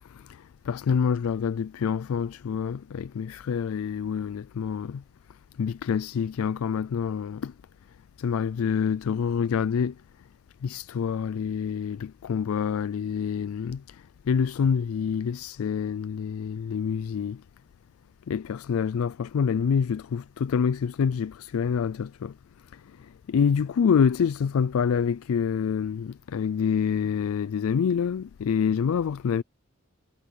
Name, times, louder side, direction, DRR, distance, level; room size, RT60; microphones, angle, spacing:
voice 1, 0.7-5.0 5.6-7.5 8.2-9.9 10.6-14.0 14.3-17.4 18.3-22.3 23.3-29.4, left 7 dB, 75° left, 0.3 m, -26 dB
head